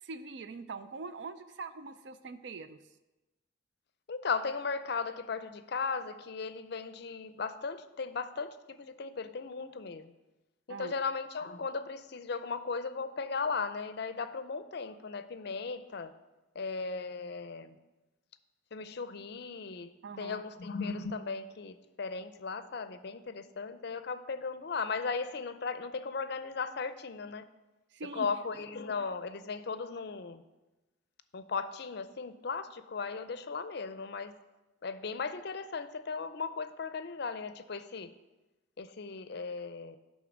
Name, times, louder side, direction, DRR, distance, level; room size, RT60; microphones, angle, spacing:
voice 1, 0.0-2.8 10.7-10.9 20.0-20.4 27.9-28.3, right 4 dB, 60° right, 11 dB, 0.4 m, -43 dB
voice 2, 4.1-10.1 10.7-16.1 16.6-17.8 18.7-27.4 28.1-30.4 31.3-34.3 34.8-38.1 38.8-40.0, left 4 dB, 55° left, 12 dB, 0.5 m, -37 dB
11.0 x 3.7 x 7.1 m, 1.1 s
head